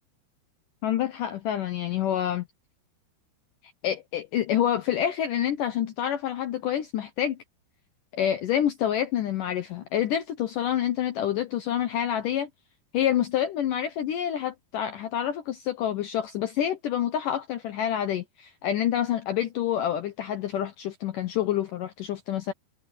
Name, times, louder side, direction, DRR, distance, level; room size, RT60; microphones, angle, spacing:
voice 1, 0.8-2.5 3.8-7.4 8.1-12.5 12.9-22.5, left 10 dB, 70° left, 2.1 m, -27 dB
omnidirectional pair, 4.9 m